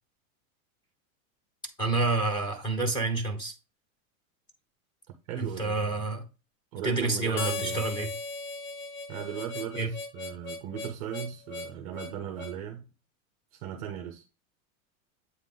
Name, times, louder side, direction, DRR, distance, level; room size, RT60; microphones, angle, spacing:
voice 1, 1.8-3.5 5.4-6.2 6.8-8.1 9.7-9.9, right 3 dB, 10° left, 0.8 m, -28 dB
voice 2, 5.3-6.1 6.7-7.8 9.1-12.9 13.5-14.2, right 9 dB, 30° right, 0.4 m, -37 dB
Harmonica, 7.4-12.6, left 3 dB, 70° left, 1.0 m, -37 dB
8.1 x 3.6 x 3.7 m
supercardioid pair, 170°, 42 cm